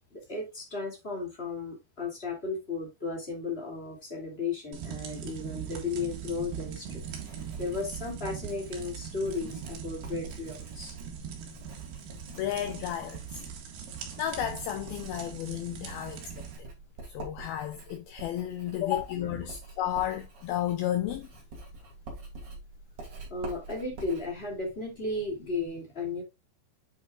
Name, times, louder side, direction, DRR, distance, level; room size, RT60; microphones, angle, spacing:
voice 1, 0.1-7.0 7.6-10.9 19.2-19.5 23.3-26.2, left 3 dB, 20° left, 1.8 m, -35 dB
sound 1, 4.7-16.6, right 8 dB, 65° right, 3.5 m, -41 dB
Writing, 6.2-25.7, right 2 dB, 35° right, 3.1 m, -47 dB
voice 2, 12.4-13.4 14.2-16.3 16.6-16.7 17.1-21.3, left 11 dB, 80° left, 2.2 m, -32 dB
8.7 x 6.3 x 2.4 m
omnidirectional pair, 5.0 m